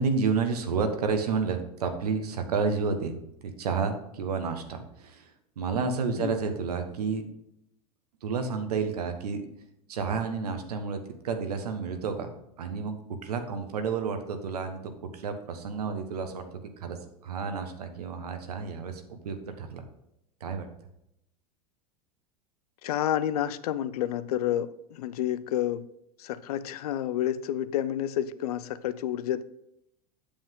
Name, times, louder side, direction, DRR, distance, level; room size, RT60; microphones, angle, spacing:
voice 1, 0.0-3.2 3.4-5.3 5.6-7.2 8.2-9.4 9.9-11.0 11.2-12.3 12.6-13.0 13.2-17.0 17.2-19.8 20.4-20.7, right 5 dB, 85° right, 1.2 m, -30 dB
voice 2, 22.8-25.8 26.2-29.4, left 11 dB, 75° left, 0.6 m, -29 dB
8.6 x 7.4 x 3.7 m
hypercardioid pair, 95°, 19 cm